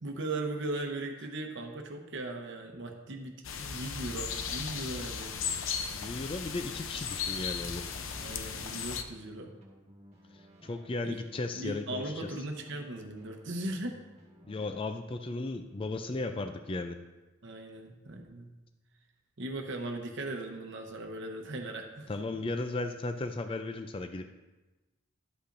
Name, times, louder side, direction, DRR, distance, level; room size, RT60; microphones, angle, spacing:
voice 1, 0.0-5.5 8.2-9.5 11.0-11.2 11.5-13.9 17.4-18.6 19.4-22.1, right 2 dB, 60° right, 3 dB, 0.9 m, -38 dB
sound 1, 3.4-9.0, left 6 dB, 70° left, 0.6 m, -36 dB
voice 2, 5.9-7.8 10.6-12.3 14.4-17.0 22.1-24.3, left 2 dB, 25° left, 8 dB, 0.4 m, -35 dB
sound 2, 6.6-14.7, equal, 30° right, 1.6 m, -57 dB
11.5 x 8.3 x 2.6 m, 1.1 s
head